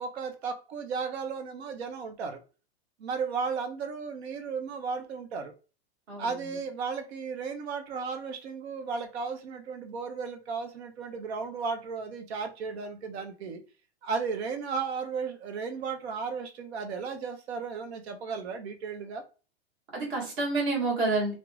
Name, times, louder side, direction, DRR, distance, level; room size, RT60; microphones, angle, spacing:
voice 1, 0.0-2.4 3.0-5.5 6.2-13.6 14.0-19.2, right 5 dB, 80° right, 5 dB, 0.7 m, -34 dB
voice 2, 6.1-6.6 19.9-21.3, right 3 dB, 25° right, -2 dB, 0.8 m, -29 dB
2.3 x 2.1 x 3.0 m, 0.34 s
supercardioid pair, 175°, 32 cm